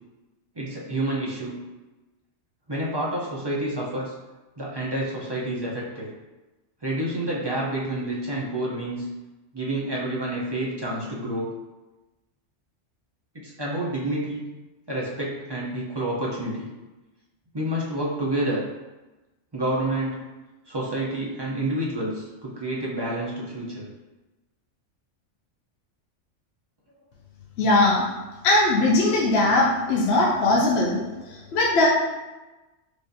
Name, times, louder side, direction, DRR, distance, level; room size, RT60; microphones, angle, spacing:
voice 1, 0.6-1.6 2.7-4.1 4.6-6.1 6.8-9.1 9.5-11.5 13.3-14.5 14.9-16.7 17.5-18.6 19.5-20.2 20.7-23.9, right 1 dB, 30° right, -6 dB, 0.4 m, -28 dB
voice 2, 27.6-28.0 28.4-31.9, left 2 dB, 65° left, -3 dB, 0.8 m, -20 dB
4.8 x 2.5 x 2.6 m, 1.1 s
omnidirectional pair, 1.2 m